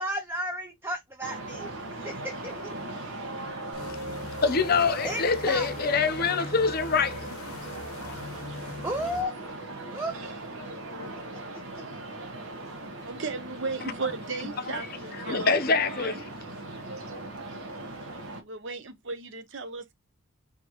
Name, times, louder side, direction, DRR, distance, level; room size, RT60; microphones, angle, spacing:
voice 1, 0.0-1.7 2.0-2.8 5.0-6.0 8.8-9.3 9.9-10.1, equal, 10° right, 0.4 m, -33 dB
sound 1, 1.2-18.4, right 2 dB, 75° right, 1.2 m, -39 dB
sound 2, 3.7-9.2, left 3 dB, 85° left, 0.9 m, -41 dB
voice 2, 4.4-7.4 15.3-16.2, left 5 dB, 45° left, 0.6 m, -25 dB
voice 3, 13.0-16.3 18.4-19.9, right 4 dB, 55° right, 0.7 m, -36 dB
5.1 x 2.8 x 2.9 m
head